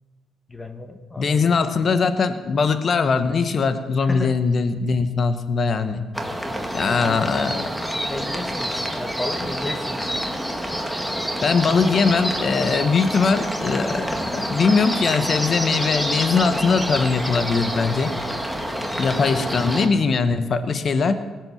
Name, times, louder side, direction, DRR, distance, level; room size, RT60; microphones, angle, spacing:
voice 1, 0.5-1.5 4.1-4.3 6.4-6.5 6.8-7.3 8.0-10.0 13.9-14.1 18.7-19.2, left 2 dB, 20° left, 6 dB, 1.5 m, -33 dB
voice 2, 1.2-6.0 6.7-7.6 11.4-14.0 14.5-18.1 19.0-21.1, left 5 dB, 50° left, 10 dB, 1.2 m, -21 dB
sound 1, 6.1-19.9, equal, 5° left, 2.0 m, -27 dB
18.5 x 9.0 x 7.3 m, 1.3 s
cardioid pair, 90°, 0 cm